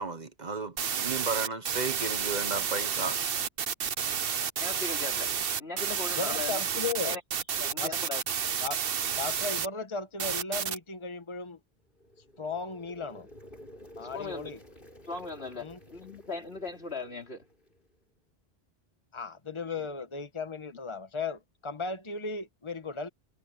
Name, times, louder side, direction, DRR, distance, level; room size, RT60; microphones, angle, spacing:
voice 1, 0.0-3.2, right 4 dB, 45° right, 1.3 m, -34 dB
sound 1, 0.8-9.7 10.2-10.8, right 7 dB, 70° right, 1.1 m, -30 dB
voice 2, 4.6-5.3 5.6-6.6 7.0-7.2 7.5-8.2 14.0-14.5 15.1-17.5 19.7-19.9, left 3 dB, 80° left, 4.3 m, -38 dB
voice 3, 6.2-7.2 7.8-8.0 8.6-8.8 9.2-11.6 12.4-13.3 14.0-14.6 15.6-15.8 19.1-23.1, left 4 dB, 30° left, 1.4 m, -36 dB
sound 2, 11.8-17.9, equal, 55° left, 7.2 m, -52 dB
omnidirectional pair, 1.0 m